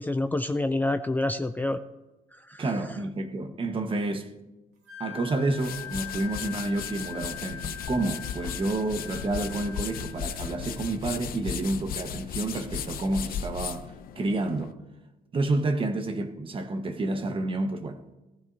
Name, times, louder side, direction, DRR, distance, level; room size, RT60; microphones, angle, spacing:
voice 1, 0.0-1.8 2.3-2.6, left 2 dB, 10° left, 0.4 m, -28 dB
voice 2, 2.6-4.3 5.0-14.7 15.3-18.0, right 2 dB, 30° right, 1.2 m, -29 dB
Wind instrument woodwind instrument, 4.8-11.0, left 9 dB, 75° right, 2.7 m, -43 dB
sound 1, 5.3-14.7, left 8 dB, 60° left, 0.7 m, -36 dB
17.5 x 15.0 x 2.7 m
cardioid pair, 110°, 17 cm